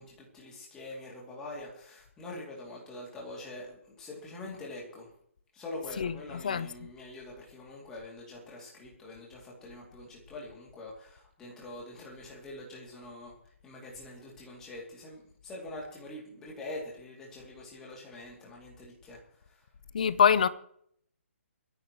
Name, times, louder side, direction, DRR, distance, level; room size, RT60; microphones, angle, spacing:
voice 1, 0.0-5.1 5.5-13.3 13.6-19.2 19.5-19.6, left 2 dB, 5° left, 2.6 m, -44 dB
voice 2, 19.9-20.5, left 7 dB, 35° left, 0.6 m, -23 dB
27.0 x 10.5 x 3.1 m
hypercardioid pair, 175°, 7 cm